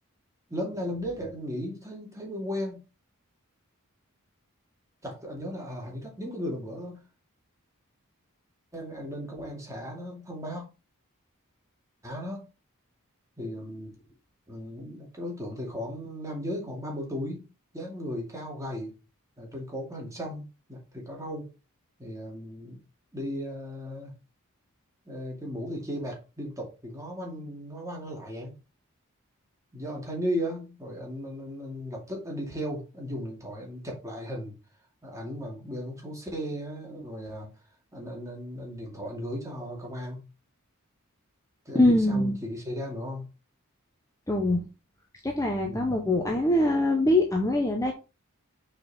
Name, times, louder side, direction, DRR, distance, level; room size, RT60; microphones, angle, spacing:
voice 1, 0.5-2.8 5.0-7.0 8.7-10.6 12.0-12.5 13.4-13.9 14.5-17.4 17.7-18.9 19.4-20.4 20.7-21.5 22.0-22.8 23.1-24.2 25.1-28.6 29.7-34.5 35.0-37.5 37.9-40.3 41.7-43.3 45.7-46.0, equal, 15° right, 2.4 m, -36 dB
voice 2, 41.7-42.3 44.3-44.7 45.2-47.9, left 1 dB, 15° left, 0.9 m, -23 dB
6.4 x 4.6 x 4.2 m
head